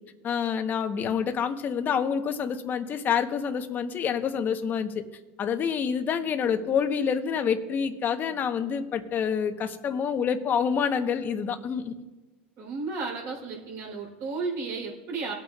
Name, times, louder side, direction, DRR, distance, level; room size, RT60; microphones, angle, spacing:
voice 1, 0.2-5.0 5.4-11.9, left 7 dB, 35° left, 7 dB, 1.1 m, -27 dB
voice 2, 12.6-15.3, right 4 dB, 55° right, -1 dB, 3.8 m, -33 dB
20.0 x 8.6 x 2.5 m, 1.2 s
supercardioid pair, 110°, 6 cm